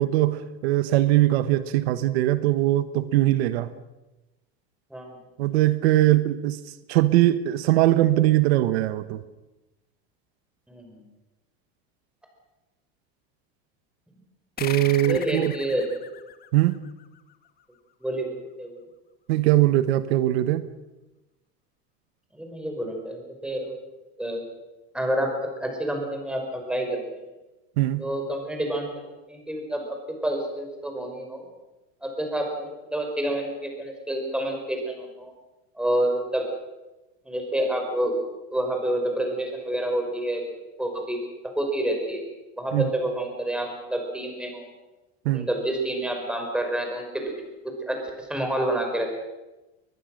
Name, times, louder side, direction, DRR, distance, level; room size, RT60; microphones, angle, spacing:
voice 1, 0.0-3.7 5.4-6.6 6.9-9.2 14.6-15.5 16.5-16.8 19.3-20.6 27.8-28.0 42.7-42.9 45.2-45.5, right 15 dB, 85° right, 1.2 m, -21 dB
voice 2, 10.7-11.0 15.0-15.9 18.0-18.8 22.3-23.8 24.2-24.4 24.9-27.0 28.0-28.9 29.3-30.0 30.2-31.4 32.0-35.3 35.8-36.5 37.3-38.1 38.5-40.4 40.8-41.2 41.6-42.2 42.6-44.7 45.3-47.3 47.6-49.1, right 1 dB, 5° right, 5.2 m, -28 dB
sound 1, 14.6-17.6, left 8 dB, 30° left, 1.7 m, -38 dB
22.5 x 21.0 x 6.5 m
supercardioid pair, 140°, 31 cm